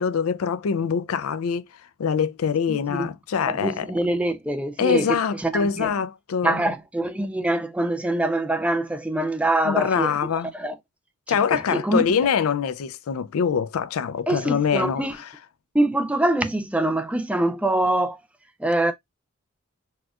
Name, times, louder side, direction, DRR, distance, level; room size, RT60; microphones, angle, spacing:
voice 1, 0.0-1.7 2.0-3.9 4.8-6.7 9.6-10.5 11.3-15.3, left 6 dB, 90° left, 0.4 m, -24 dB
voice 2, 2.7-3.1 3.5-5.1 5.4-5.9 6.4-10.1 10.5-10.8 11.3-12.0 14.3-15.1 15.7-18.2 18.6-18.9, right 1 dB, 5° right, 0.3 m, -24 dB
4.2 x 2.3 x 2.3 m
head